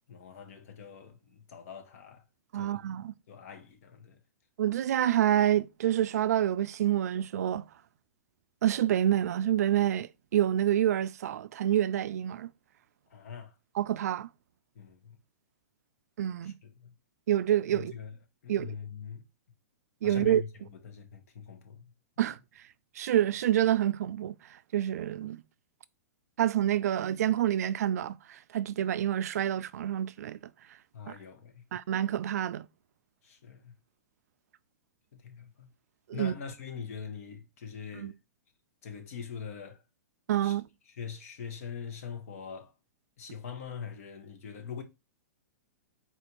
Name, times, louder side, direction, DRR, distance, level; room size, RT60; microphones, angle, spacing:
voice 1, 0.1-2.2 2.5-2.8 3.3-4.2 13.1-13.5 14.7-15.1 16.4-16.9 17.7-18.1 18.4-19.2 20.0-20.5 20.8-21.9 30.9-31.6 33.2-33.7 35.1-35.7 36.1-38.1 38.8-39.8 40.4-40.6 41.0-42.7 43.2-44.8, left 7 dB, 60° left, 1.1 m, -43 dB
voice 2, 2.5-3.1 4.6-7.6 8.6-12.5 13.7-14.3 16.2-16.5 17.3-17.9 18.5-18.7 20.0-20.4 22.2-22.4 23.0-24.3 24.7-25.4 26.4-30.4 31.1-31.2 31.7-32.7 36.1-36.4 37.9-38.1 40.3-40.6, right 11 dB, 70° right, 0.3 m, -27 dB
4.3 x 2.5 x 4.5 m
hypercardioid pair, 155°, 9 cm